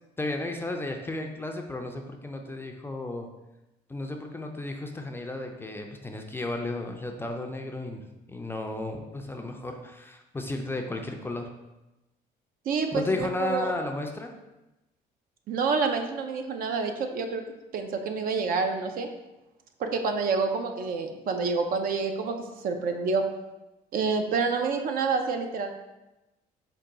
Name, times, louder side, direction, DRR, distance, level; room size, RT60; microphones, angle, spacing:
voice 1, 0.2-3.3 3.9-11.5 12.9-14.4, left 2 dB, 15° left, 3 dB, 0.4 m, -33 dB
voice 2, 12.7-13.7 15.5-17.4 17.7-19.1 19.8-23.2 23.9-25.7, right 4 dB, 60° right, 6 dB, 0.5 m, -28 dB
4.6 x 2.2 x 3.8 m, 0.99 s
cardioid pair, 110°, 17 cm